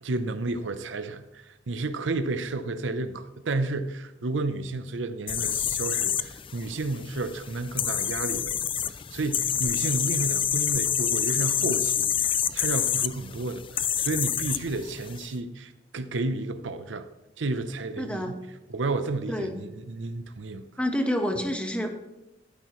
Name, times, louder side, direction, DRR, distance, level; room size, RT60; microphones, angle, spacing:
voice 1, 0.0-8.5 9.1-17.1 17.4-18.4 18.7-20.6, right 2 dB, 75° right, 10 dB, 0.7 m, -31 dB
sound 1, 5.3-15.3, left 9 dB, 30° left, 0.4 m, -28 dB
voice 2, 18.0-18.3 19.3-19.5 20.8-22.0, equal, 5° left, 4 dB, 1.2 m, -28 dB
13.5 x 12.0 x 3.1 m, 0.96 s
head